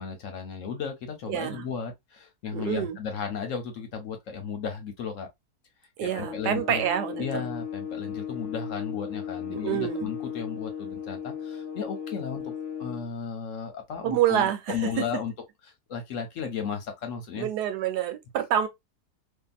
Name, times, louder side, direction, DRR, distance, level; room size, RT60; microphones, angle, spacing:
voice 1, 0.0-5.3 6.0-6.8 7.2-12.5 12.8-15.3 15.9-17.5, left 6 dB, 60° left, 0.9 m, -34 dB
voice 2, 1.3-1.6 2.5-3.0 6.0-7.5 9.5-10.1 14.0-15.2 17.3-18.7, right 10 dB, 90° right, 1.3 m, -27 dB
sound 1, 6.0-13.1, left 8 dB, 80° left, 0.5 m, -36 dB
2.7 x 2.5 x 2.3 m
omnidirectional pair, 1.7 m